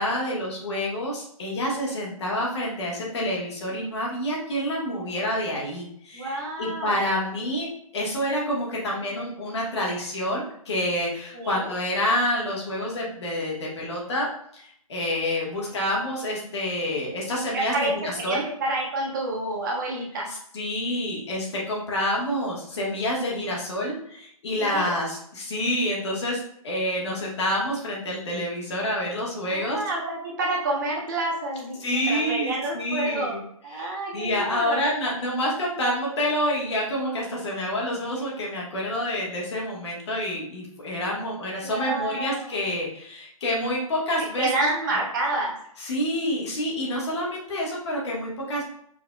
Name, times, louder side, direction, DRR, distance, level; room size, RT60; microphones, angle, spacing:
voice 1, 0.0-18.4 20.3-29.8 31.8-33.4 33.7-44.7 45.8-48.6, left 1 dB, 50° left, -3 dB, 1.3 m, -28 dB
voice 2, 6.1-6.9 11.3-11.7 17.5-20.3 24.6-24.9 29.5-33.4 33.6-34.8 41.6-42.5 44.4-45.6, right 2 dB, 35° right, -2 dB, 0.8 m, -29 dB
4.8 x 2.6 x 2.2 m, 0.68 s
hypercardioid pair, 155°, 19 cm